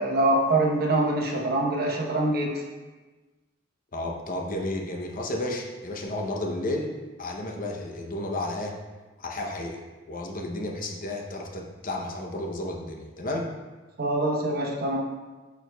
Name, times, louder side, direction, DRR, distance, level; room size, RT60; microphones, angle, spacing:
voice 1, 0.0-2.6 14.0-15.0, right 2 dB, 55° right, 0 dB, 0.9 m, -24 dB
voice 2, 3.9-8.8 9.2-9.8 10.1-13.5, left 1 dB, 45° left, 2 dB, 0.7 m, -32 dB
8.9 x 4.7 x 2.3 m, 1.2 s
head